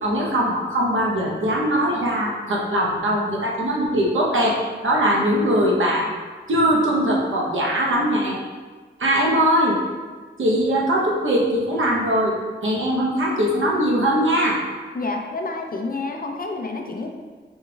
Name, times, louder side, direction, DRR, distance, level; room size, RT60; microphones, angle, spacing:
voice 1, 0.0-6.1 6.5-8.4 9.0-9.8 10.4-12.4 12.6-14.6, equal, 80° right, -3 dB, 1.0 m, -21 dB
voice 2, 14.9-17.1, left 3 dB, 45° left, 3 dB, 0.6 m, -28 dB
5.1 x 4.3 x 2.3 m, 1.4 s
wide cardioid pair, 65°, 20 cm